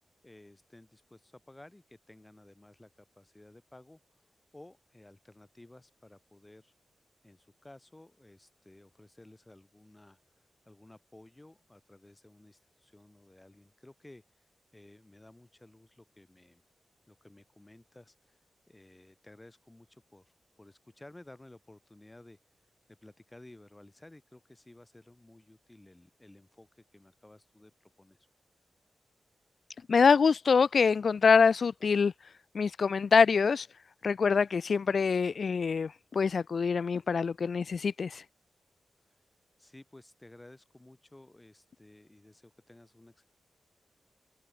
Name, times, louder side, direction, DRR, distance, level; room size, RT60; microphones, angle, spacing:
voice 1, 0.2-6.7 7.2-10.2 10.7-14.4 14.7-16.6 17.1-18.4 18.7-22.4 22.9-28.2 39.0-39.2 39.6-43.2, left 1 dB, 15° left, 5.6 m, -55 dB
voice 2, 29.9-32.1 32.5-33.7 34.0-38.2, left 5 dB, 55° left, 0.3 m, -25 dB
wide cardioid pair, 135°, 0 cm